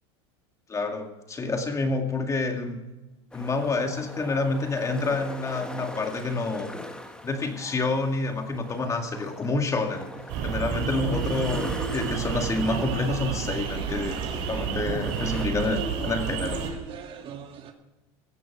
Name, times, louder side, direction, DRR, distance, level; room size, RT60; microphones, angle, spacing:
voice 1, 0.7-2.8 3.3-6.7 7.2-10.1 10.4-14.1 14.5-16.6, left 3 dB, 20° left, 5 dB, 2.1 m, -28 dB
sound 1, 3.3-15.5, left 1 dB, 5° left, 2.0 m, -42 dB
sound 2, 10.3-16.7, right 7 dB, 60° right, 4.0 m, -31 dB
sound 3, 11.9-17.7, right 7 dB, 40° right, 2.1 m, -40 dB
16.5 x 14.5 x 4.7 m, 1.1 s
supercardioid pair, 115°, 14 cm